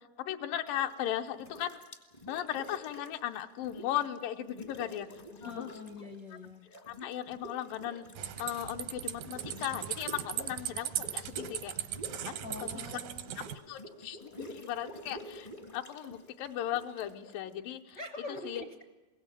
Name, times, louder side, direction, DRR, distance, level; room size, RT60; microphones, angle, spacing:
voice 1, 0.2-1.8 2.3-5.8 6.9-8.1 8.4-11.7 12.1-12.8 13.4-18.0 18.3-18.6, left 12 dB, 85° left, 5 dB, 2.5 m, -37 dB
sound 1, 0.7-1.1 1.4-4.2 4.4-6.2 6.4-18.0, equal, 45° left, 0.5 m, -49 dB
voice 2, 5.4-6.7 12.4-13.3 17.9-18.8, left 2 dB, 65° left, 5 dB, 1.0 m, -44 dB
sound 2, 8.1-13.6, right 11 dB, 85° right, 2.8 m, -38 dB
22.5 x 17.0 x 8.9 m, 1.2 s
omnidirectional pair, 3.9 m